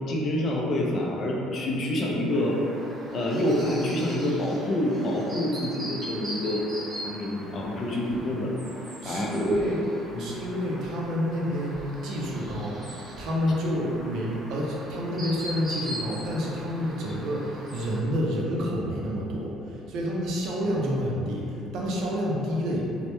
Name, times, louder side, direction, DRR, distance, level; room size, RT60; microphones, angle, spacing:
voice 1, 0.1-2.6 3.1-6.7 7.0-8.5 9.0-9.6 10.1-10.3, left 1 dB, 40° left, -2 dB, 0.3 m, -27 dB
Chirp tweet, 2.3-18.0, equal, 20° right, 0.7 m, -41 dB
voice 2, 9.0-9.9 10.2-12.9 13.2-22.9, equal, 60° right, -3 dB, 0.4 m, -29 dB
2.1 x 2.0 x 2.9 m, 2.7 s
cardioid pair, 140°, 0 cm